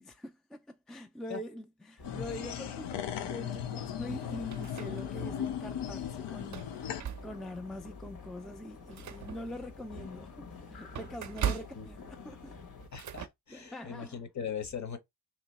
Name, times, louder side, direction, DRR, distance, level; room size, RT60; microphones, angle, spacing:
voice 1, 0.0-12.6 13.5-14.2, left 1 dB, ahead, 0.4 m, -44 dB
sound 1, 2.0-7.0, left 9 dB, 90° left, 0.6 m, -37 dB
sound 2, 2.0-12.9, left 5 dB, 60° left, 1.4 m, -49 dB
sound 3, 4.1-5.4 5.8-5.9 6.4-7.6 8.1-8.2 8.6-13.3, right 9 dB, 45° right, 0.5 m, -40 dB
voice 2, 11.4-11.9 12.9-15.0, left 7 dB, 45° left, 1.1 m, -40 dB
2.9 x 2.9 x 4.1 m
cardioid pair, 80°, 40 cm